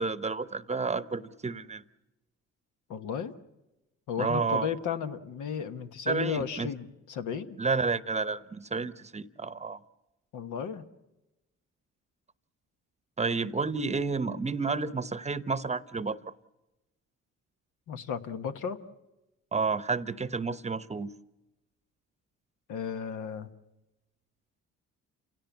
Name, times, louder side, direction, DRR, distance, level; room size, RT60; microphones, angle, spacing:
voice 1, 0.0-1.8 4.2-4.7 6.1-6.7 7.6-9.8 13.2-16.3 19.5-21.1, right 4 dB, 20° right, 0.8 m, -30 dB
voice 2, 2.9-3.3 4.1-7.6 10.3-10.9 17.9-18.8 22.7-23.5, left 7 dB, 85° left, 1.3 m, -34 dB
28.5 x 17.0 x 7.2 m
cardioid pair, 90°, 30 cm